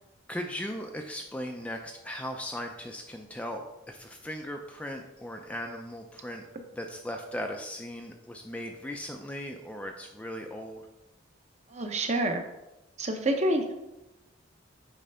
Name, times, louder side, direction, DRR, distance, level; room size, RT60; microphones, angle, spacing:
voice 1, 0.3-6.4 6.8-10.9, equal, 5° left, 3 dB, 0.4 m, -38 dB
voice 2, 11.7-12.4 13.0-13.7, right 1 dB, 35° right, 5 dB, 0.7 m, -27 dB
8.5 x 3.3 x 5.4 m, 0.96 s
head